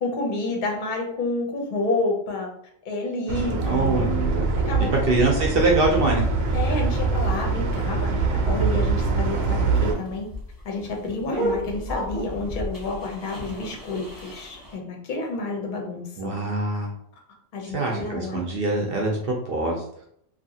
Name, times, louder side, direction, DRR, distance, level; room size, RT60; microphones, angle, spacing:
voice 1, 0.0-2.5 2.8-5.1 6.5-8.1 8.5-10.3 10.6-16.4 17.5-18.4, left 2 dB, 45° left, 1 dB, 0.7 m, -29 dB
sound 1, 3.3-9.9, right 4 dB, 75° right, 0.9 m, -24 dB
voice 2, 3.7-4.5 5.0-6.2 16.2-16.9 17.7-19.8, right 3 dB, 60° right, 0 dB, 0.6 m, -23 dB
sound 2, 9.1-14.7, equal, 15° left, 1.0 m, -33 dB
2.8 x 2.4 x 2.7 m, 0.69 s
omnidirectional pair, 1.4 m